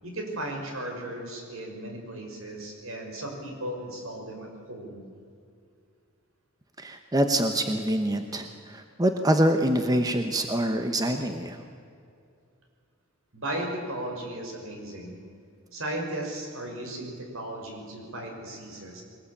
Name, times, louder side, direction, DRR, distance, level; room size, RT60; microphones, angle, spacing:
voice 1, 0.0-5.1 13.3-15.2 15.7-19.0, right 1 dB, 70° right, 2 dB, 5.7 m, -36 dB
voice 2, 6.8-11.6, right 1 dB, 20° right, 6 dB, 1.0 m, -25 dB
22.5 x 20.0 x 8.6 m, 2.4 s
head